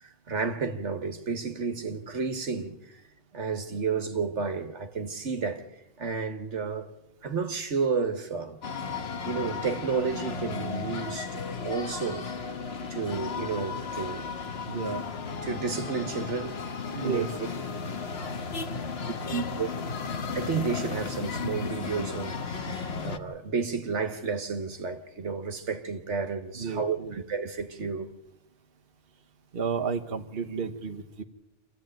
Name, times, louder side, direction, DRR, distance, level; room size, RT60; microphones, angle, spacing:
voice 1, 0.0-3.0 3.3-6.9 7.2-8.6 9.2-12.3 12.9-14.3 15.4-16.6 16.9-17.3 19.3-19.7 20.3-28.1, right 5 dB, 75° right, 1.8 m, -31 dB
sound 1, 8.6-23.2, left 5 dB, 60° left, 1.3 m, -34 dB
voice 2, 14.7-15.1 16.9-17.3 26.6-27.2 29.5-31.2, right 5 dB, 55° right, 1.3 m, -32 dB
26.5 x 15.0 x 9.1 m
omnidirectional pair, 1.2 m